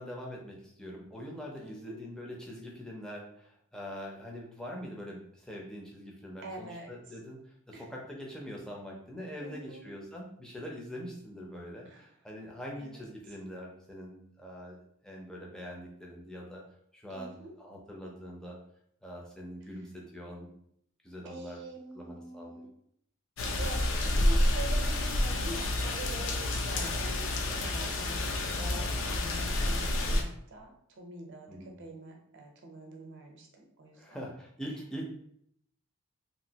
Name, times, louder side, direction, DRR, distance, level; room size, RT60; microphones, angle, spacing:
voice 1, 0.0-14.8 15.0-16.6 16.9-18.6 19.0-20.5 21.0-21.6 21.9-22.7 28.7-29.0 31.5-31.8 33.9-35.0, equal, 5° left, -2 dB, 0.5 m, -43 dB
voice 2, 1.6-2.0 6.4-6.9 7.7-7.9 9.4-9.9 11.9-12.1 12.8-13.1 17.1-17.5 21.2-22.7 23.6-30.7 31.0-34.2, right 2 dB, 55° right, 1 dB, 0.7 m, -45 dB
sound 1, 23.4-30.2, left 1 dB, 60° left, 0.4 m, -29 dB
2.9 x 2.6 x 2.7 m, 0.69 s
head